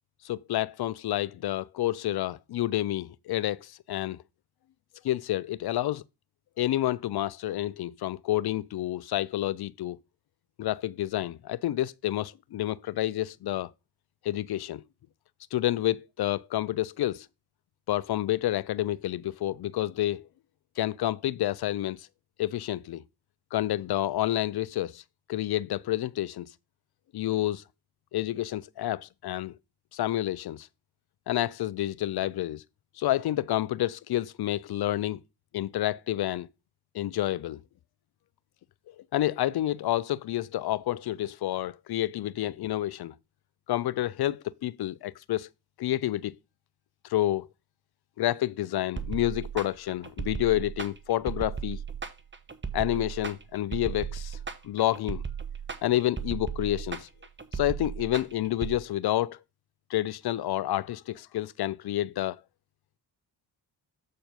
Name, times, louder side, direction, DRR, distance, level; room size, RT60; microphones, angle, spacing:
voice 1, 0.2-4.2 5.0-6.0 6.6-10.0 10.6-13.7 14.2-14.8 15.5-17.3 17.9-20.3 20.8-22.1 22.4-23.0 23.5-25.0 25.3-26.5 27.1-27.6 28.1-29.5 29.9-30.7 31.3-32.6 33.0-35.2 35.5-36.5 36.9-37.6 39.1-43.1 43.7-45.5 45.8-46.3 47.1-47.5 48.2-51.8 52.7-54.4 54.6-55.2 55.8-57.1 57.5-59.4 59.9-62.4, left 14 dB, 55° left, 0.6 m, -29 dB
sound 1, 49.0-58.8, right 6 dB, 25° right, 1.2 m, -36 dB
7.5 x 4.5 x 5.2 m
supercardioid pair, 45°, 47 cm